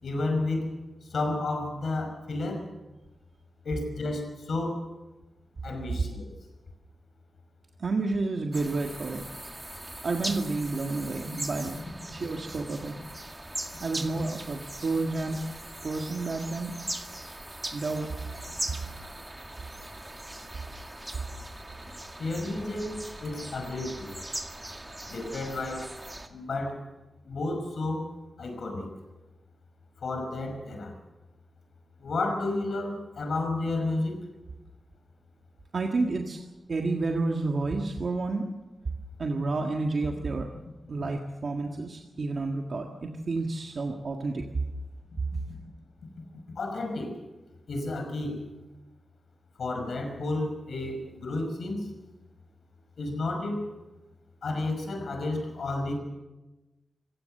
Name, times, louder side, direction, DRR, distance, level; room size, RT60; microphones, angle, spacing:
voice 1, 0.0-0.7 1.1-2.6 3.6-4.8 5.6-6.3 22.2-24.2 25.1-25.9 26.3-26.8 27.2-28.1 28.4-28.9 30.0-30.9 32.0-34.2 46.6-47.1 47.7-48.4 49.6-51.9 53.0-53.6 54.4-55.9, left 2 dB, 75° left, 5 dB, 5.6 m, -31 dB
voice 2, 7.8-9.3 10.0-11.8 12.1-13.0 13.8-15.4 15.8-16.7 17.7-18.1 35.7-36.4 36.7-38.5 39.2-40.5 40.9-44.4, right 3 dB, 55° right, 2 dB, 1.7 m, -30 dB
sound 1, 8.5-26.3, right 1 dB, 15° right, 1.9 m, -40 dB
26.0 x 17.0 x 6.7 m, 1.1 s
wide cardioid pair, 110°, 0 cm